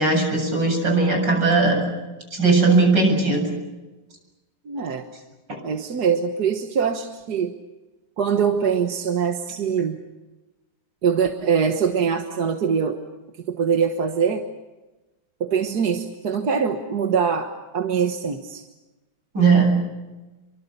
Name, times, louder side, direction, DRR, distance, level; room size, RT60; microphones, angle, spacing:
voice 1, 0.0-1.8 2.3-3.5 5.5-5.6 19.3-19.8, right 3 dB, 75° right, 3 dB, 8.5 m, -18 dB
voice 2, 4.7-5.1 5.6-7.5 8.2-10.0 11.0-13.0 13.5-14.5 15.4-18.6, right 6 dB, 60° right, 5 dB, 1.9 m, -23 dB
28.5 x 24.5 x 6.7 m, 1.1 s
omnidirectional pair, 1.9 m